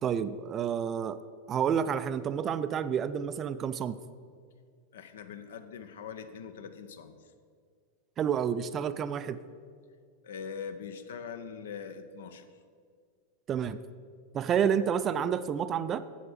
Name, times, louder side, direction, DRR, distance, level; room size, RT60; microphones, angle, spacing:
voice 1, 0.0-1.2 1.5-4.0 8.2-9.4 13.5-13.8 14.3-16.0, right 8 dB, 30° right, 13 dB, 0.3 m, -29 dB
voice 2, 4.9-7.3 10.2-12.5, left 6 dB, 60° left, 9 dB, 0.6 m, -42 dB
8.0 x 7.5 x 5.1 m, 2.1 s
figure-of-eight pair, 90°, 0 cm